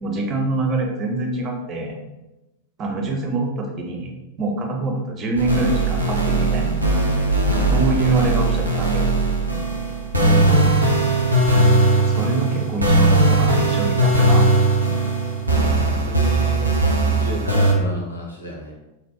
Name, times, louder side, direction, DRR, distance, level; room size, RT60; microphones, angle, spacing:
voice 1, 0.0-2.0 2.8-4.1 4.4-6.7 7.7-9.0 12.1-14.4, right 3 dB, 30° right, 1 dB, 0.5 m, -25 dB
sound 1, 5.4-17.7, right 2 dB, 85° right, 0.4 m, -18 dB
voice 2, 10.2-10.7 15.9-16.7 17.0-18.7, equal, 80° left, -1 dB, 0.6 m, -31 dB
2.6 x 2.1 x 2.3 m, 0.98 s
figure-of-eight pair, 90°, 0 cm